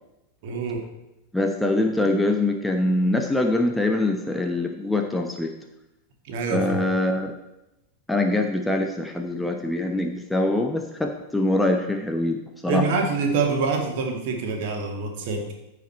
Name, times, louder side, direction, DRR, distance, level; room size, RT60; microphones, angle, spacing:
voice 1, 0.4-0.9 6.3-6.9 12.7-15.5, right 4 dB, 50° right, 2 dB, 2.0 m, -26 dB
voice 2, 1.3-5.5 6.5-7.4 8.1-12.4 12.6-12.9, left 2 dB, 5° left, 3 dB, 0.8 m, -23 dB
14.5 x 5.1 x 4.4 m, 0.94 s
figure-of-eight pair, 90°, 0 cm